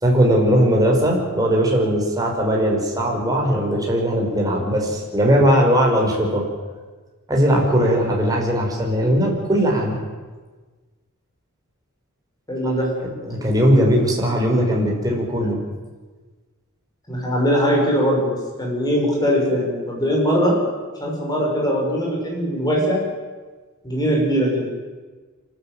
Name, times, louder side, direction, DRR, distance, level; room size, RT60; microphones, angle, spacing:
voice 1, 0.0-6.5 7.3-10.0 12.6-12.7 13.2-15.6, equal, 15° right, -1 dB, 5.5 m, -19 dB
voice 2, 12.5-13.1 17.1-20.6 21.0-23.0 23.8-24.7, equal, 20° left, -2 dB, 6.2 m, -21 dB
27.0 x 13.0 x 9.2 m, 1.3 s
head